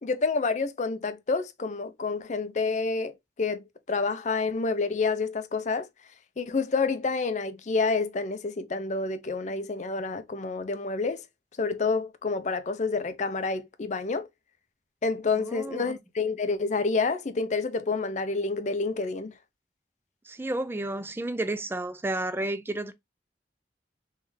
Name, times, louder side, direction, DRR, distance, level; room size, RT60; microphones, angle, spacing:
voice 1, 0.0-5.9 6.4-11.2 11.6-14.3 15.0-19.3, left 4 dB, 40° left, 0.5 m, -28 dB
voice 2, 15.3-16.0 20.3-22.9, right 2 dB, 15° right, 0.3 m, -31 dB
3.5 x 3.2 x 3.2 m
head